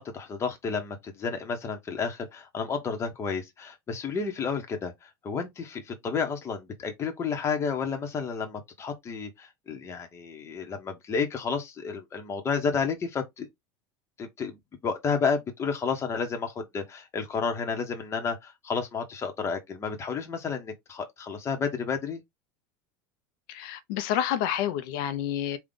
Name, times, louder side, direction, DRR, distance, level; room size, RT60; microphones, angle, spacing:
voice 1, 0.0-13.5 14.2-14.6 14.8-22.2, left 5 dB, 25° left, 1.0 m, -31 dB
voice 2, 23.5-25.6, left 10 dB, 70° left, 0.7 m, -29 dB
3.8 x 2.4 x 3.7 m
supercardioid pair, 140°, 11 cm